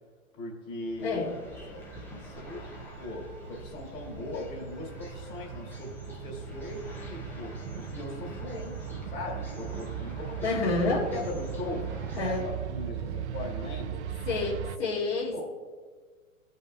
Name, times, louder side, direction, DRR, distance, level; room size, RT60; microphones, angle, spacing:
voice 1, 0.3-1.2 1.7-1.8 2.2-2.6 3.0-10.5 11.1-14.2 15.3-15.4, left 2 dB, 30° left, -1 dB, 2.3 m, -39 dB
sound 1, 0.8-14.8, right 8 dB, 55° right, 0.5 m, -39 dB
voice 2, 1.0-1.3 10.4-11.1 12.1-12.4 14.3-15.4, left 3 dB, 50° left, -6 dB, 2.2 m, -28 dB
sound 2, 1.0-12.4, left 1 dB, 5° left, 0.4 m, -46 dB
15.0 x 5.5 x 2.2 m, 1.5 s
hypercardioid pair, 130°, 42 cm